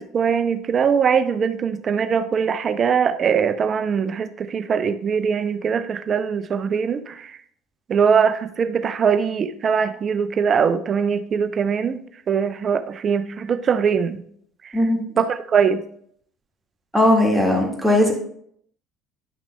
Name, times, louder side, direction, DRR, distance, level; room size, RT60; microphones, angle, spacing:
voice 1, 0.0-7.3 7.9-12.0 12.3-14.2 15.2-15.8, right 6 dB, 40° right, 10 dB, 0.6 m, -21 dB
voice 2, 14.7-15.1 16.9-18.1, left 1 dB, ahead, -1 dB, 1.8 m, -18 dB
9.9 x 5.9 x 2.2 m, 0.65 s
hypercardioid pair, 60°, 0 cm